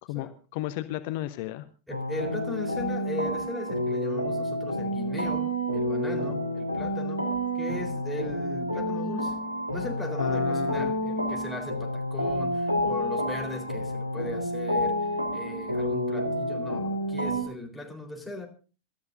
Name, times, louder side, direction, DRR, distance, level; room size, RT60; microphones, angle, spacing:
voice 1, 0.1-1.7 10.2-10.9, left 15 dB, 50° left, 11 dB, 0.9 m, -33 dB
voice 2, 1.9-7.3 7.5-9.4 9.7-18.5, left 1 dB, ahead, 1 dB, 3.9 m, -38 dB
sound 1, 1.9-17.4, equal, 80° right, 2.5 m, -29 dB
26.5 x 13.0 x 2.6 m, 0.35 s
figure-of-eight pair, 90°, 0 cm